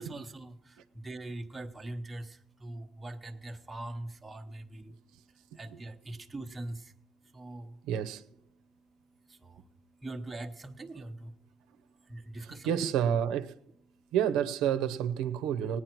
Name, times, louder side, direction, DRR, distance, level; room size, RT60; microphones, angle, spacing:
voice 1, 0.0-4.9 5.6-6.9 7.3-7.8 9.3-9.6 10.0-11.3 12.1-12.9, right 2 dB, 15° right, 0.9 m, -42 dB
voice 2, 7.9-8.2 12.4-13.5 14.1-15.8, right 9 dB, 90° right, 0.7 m, -29 dB
18.0 x 9.7 x 4.5 m
cardioid pair, 160°, 0 cm